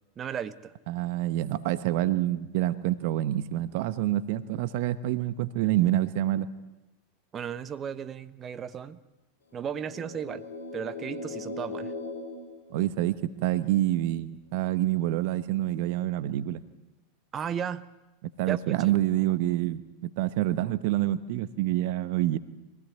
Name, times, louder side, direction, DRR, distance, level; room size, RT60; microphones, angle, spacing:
voice 1, 0.2-0.7 7.3-9.0 9.5-10.4 10.7-11.9 17.3-17.9 18.5-18.9, right 8 dB, 30° right, 12 dB, 1.0 m, -35 dB
voice 2, 0.9-6.5 12.7-16.6 18.4-22.4, right 14 dB, 60° right, 14 dB, 0.9 m, -27 dB
sound 1, 9.5-13.4, left 3 dB, 75° left, 5.4 m, -39 dB
23.5 x 17.0 x 9.4 m, 1.0 s
hypercardioid pair, 90°, 0 cm